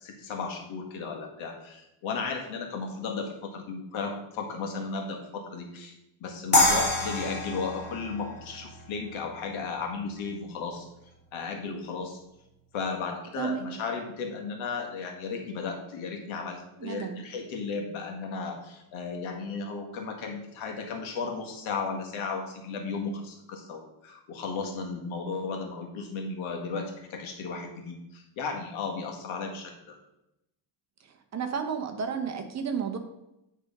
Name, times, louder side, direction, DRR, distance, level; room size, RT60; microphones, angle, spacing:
voice 1, 0.0-6.0 6.2-10.9 11.3-12.2 12.7-30.0, left 4 dB, 90° left, 3 dB, 1.8 m, -35 dB
sound 1, 6.5-9.6, left 2 dB, 20° left, 1.4 m, -27 dB
voice 2, 16.8-17.2 31.3-33.0, right 6 dB, 35° right, 5 dB, 0.9 m, -32 dB
9.5 x 3.7 x 5.3 m, 0.88 s
cardioid pair, 170°, 47 cm